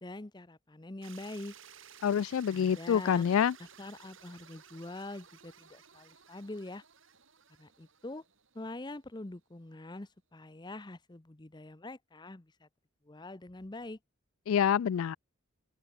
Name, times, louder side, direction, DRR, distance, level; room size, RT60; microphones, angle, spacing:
voice 1, 0.0-1.5 2.5-3.2 3.8-6.8 7.6-8.2 8.5-12.7 13.0-14.0, left 2 dB, 20° left, 0.7 m, -44 dB
sound 1, 1.0-9.0, right 8 dB, 65° right, 6.4 m, -56 dB
voice 2, 2.0-3.5 14.5-15.2, left 8 dB, 75° left, 0.3 m, -27 dB
open air
head